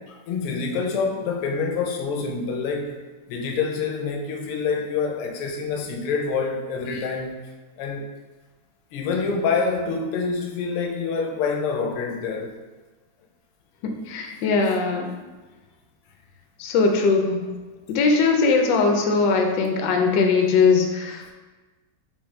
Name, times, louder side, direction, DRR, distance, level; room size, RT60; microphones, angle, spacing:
voice 1, 0.0-3.0 3.3-7.4 7.8-8.0 8.9-12.5, left 5 dB, 90° left, 2 dB, 1.6 m, -26 dB
voice 2, 13.8-15.1 16.6-17.5 17.9-21.3, left 4 dB, 70° left, 3 dB, 1.2 m, -20 dB
5.0 x 3.4 x 3.1 m, 1.3 s
omnidirectional pair, 2.4 m